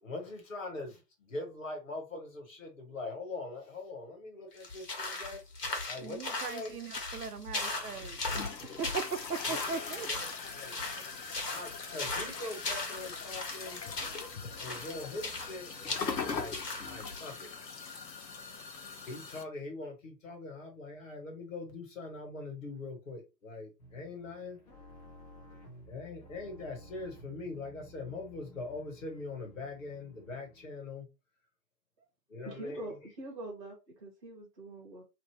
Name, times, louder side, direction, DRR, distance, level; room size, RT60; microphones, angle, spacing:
voice 1, 0.0-5.4 5.9-6.8 9.5-11.1 11.5-13.8 14.6-16.6 16.8-17.5 18.8-24.6 25.9-31.1 32.3-33.0, left 3 dB, 50° left, 1.4 m, -42 dB
sound 1, 4.6-17.4, left 3 dB, 70° left, 1.3 m, -38 dB
voice 2, 6.0-8.4 8.8-10.1, right 5 dB, 65° right, 0.6 m, -39 dB
sound 2, 7.7-19.4, left 5 dB, 85° left, 0.7 m, -41 dB
sound 3, 23.8-30.8, equal, 25° left, 0.8 m, -55 dB
voice 3, 32.4-35.0, right 2 dB, 20° right, 0.7 m, -44 dB
2.9 x 2.0 x 3.2 m
figure-of-eight pair, 135°, 49 cm